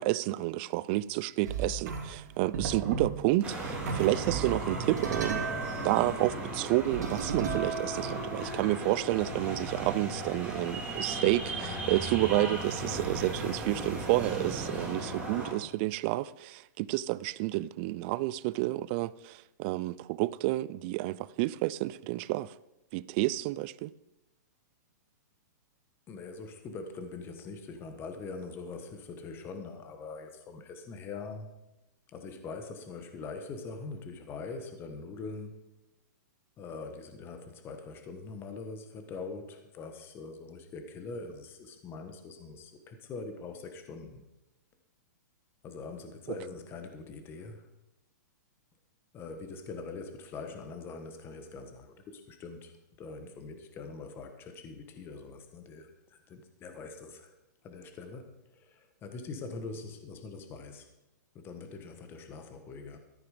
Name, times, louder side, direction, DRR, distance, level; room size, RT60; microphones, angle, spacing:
voice 1, 0.0-5.4 5.8-22.5 22.9-23.9, right 17 dB, 35° right, 0.4 m, -30 dB
sound 1, 1.4-2.3 2.5-3.2 3.7-8.6, right 5 dB, 70° right, 3.0 m, -36 dB
sound 2, 3.4-15.5, right 1 dB, 10° right, 2.9 m, -36 dB
voice 2, 26.1-31.5 32.1-35.6 36.6-44.2 45.6-47.7 49.1-57.3 57.6-60.9 61.3-63.0, left 4 dB, 20° left, 1.3 m, -43 dB
14.0 x 8.9 x 5.0 m
hypercardioid pair, 145°, 10 cm